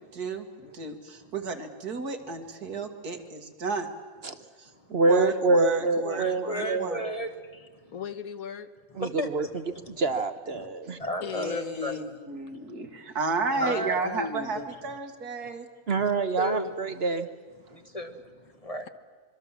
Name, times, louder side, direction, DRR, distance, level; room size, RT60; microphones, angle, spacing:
voice 1, 0.1-0.5 0.7-3.9 4.6-7.0 11.3-15.7, right 3 dB, 85° right, 2.3 m, -32 dB
voice 2, 4.9-6.9 9.0-9.4 10.0-11.0 15.9-17.3, right 3 dB, 45° right, 1.1 m, -25 dB
voice 3, 6.0-7.7 8.9-9.8 10.5-10.7 11.0-12.0 13.6-14.0 16.0-16.1 16.4-16.7 17.6-18.9, equal, 25° left, 1.4 m, -34 dB
voice 4, 7.9-8.7 11.2-12.0 13.5-14.7, left 6 dB, 70° left, 1.4 m, -37 dB
25.5 x 23.5 x 7.3 m
omnidirectional pair, 1.6 m